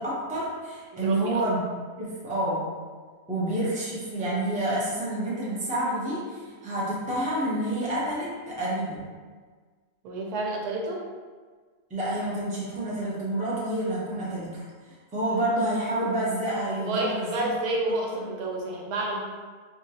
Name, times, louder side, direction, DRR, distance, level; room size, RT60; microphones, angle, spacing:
voice 1, 0.0-1.6 2.0-2.7 3.3-9.0 11.9-17.5, right 1 dB, 10° right, -7 dB, 0.4 m, -28 dB
voice 2, 0.9-1.4 3.3-3.5 10.0-11.0 16.8-19.2, right 2 dB, 85° right, -1 dB, 1.2 m, -30 dB
3.8 x 2.5 x 2.8 m, 1.5 s
omnidirectional pair, 1.6 m